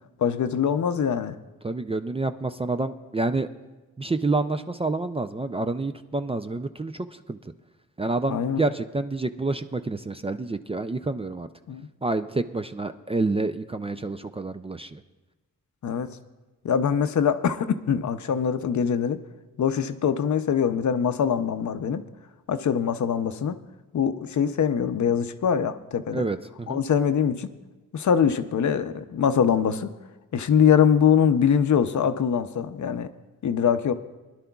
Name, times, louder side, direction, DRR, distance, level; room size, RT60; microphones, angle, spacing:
voice 1, 0.2-1.4 8.3-8.6 11.7-11.9 15.8-16.1 16.6-19.2 19.6-22.0 22.5-23.6 23.9-26.2 26.7-27.5 27.9-29.9 30.3-33.1 33.4-33.9, left 7 dB, 60° left, 10 dB, 0.6 m, -23 dB
voice 2, 1.6-3.5 4.0-7.4 8.0-11.5 12.0-15.0 26.1-26.8, right 3 dB, 20° right, 9 dB, 0.4 m, -28 dB
21.0 x 11.5 x 2.3 m, 1.2 s
cardioid pair, 90°, 33 cm